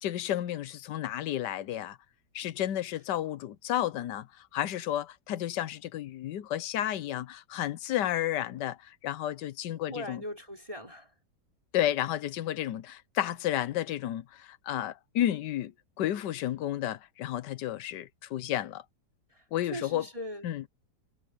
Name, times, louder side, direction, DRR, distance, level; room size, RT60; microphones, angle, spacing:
voice 1, 0.0-2.0 2.3-10.2 11.7-18.8 19.5-20.1 20.4-20.7, left 12 dB, 80° left, 1.4 m, -32 dB
voice 2, 9.9-11.1 19.3-19.4 19.7-20.5, left 1 dB, 20° right, 5.0 m, -40 dB
omnidirectional pair, 1.8 m